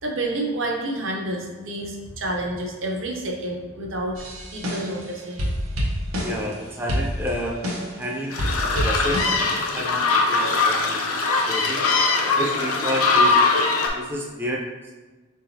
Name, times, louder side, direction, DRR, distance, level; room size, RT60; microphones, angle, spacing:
voice 1, 0.0-4.2 4.5-5.5, right 1 dB, 65° right, 0 dB, 0.8 m, -29 dB
sound 1, 4.2-5.1 5.4-6.6 6.9-8.0 8.4-9.5, equal, 90° right, 1.0 m, -27 dB
voice 2, 6.1-7.6 7.9-11.9 12.3-13.4 13.9-14.9, equal, 10° right, -2 dB, 0.3 m, -30 dB
sound 2, 8.3-13.9, left 3 dB, 90° left, 0.6 m, -21 dB
4.9 x 3.8 x 2.7 m, 1.3 s
head